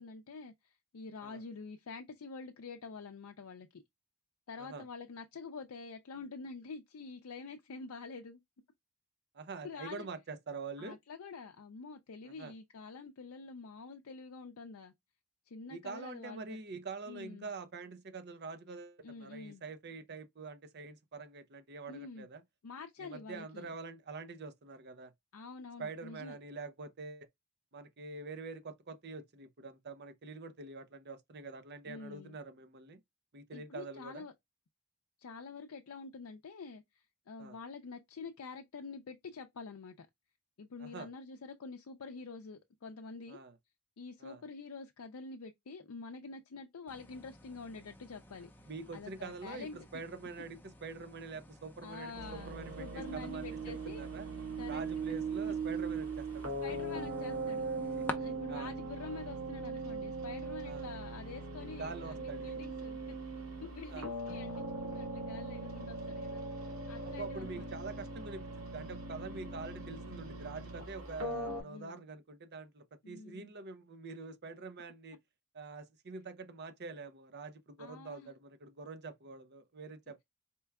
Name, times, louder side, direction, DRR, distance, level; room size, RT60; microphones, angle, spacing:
voice 1, 0.0-3.8 4.5-8.4 9.6-10.1 10.8-14.9 15.5-16.6 17.1-17.5 19.0-19.6 21.9-22.3 22.6-23.7 25.3-26.4 31.8-32.4 33.5-34.3 35.2-40.1 40.6-43.4 44.0-48.5 48.9-49.8 51.8-54.1 54.6-54.8 56.6-63.0 63.6-66.4 66.9-67.7 71.2-72.0 73.0-73.5 77.8-78.3, left 4 dB, 75° left, 0.5 m, -47 dB
voice 2, 9.3-11.0 12.2-12.5 15.7-22.4 23.0-25.1 25.8-27.3 27.7-33.0 33.3-34.2 37.4-37.6 40.8-41.1 43.3-43.5 44.2-44.4 48.7-54.3 54.7-56.7 58.0-58.1 58.5-58.7 60.6-60.9 61.8-62.5 63.9-64.1 67.0-75.2 75.5-80.2, right 4 dB, 50° right, 0.6 m, -45 dB
sound 1, 46.9-58.1, left 1 dB, 10° left, 0.6 m, -51 dB
sound 2, 52.1-71.6, right 3 dB, 75° right, 2.1 m, -40 dB
4.4 x 2.2 x 3.4 m
head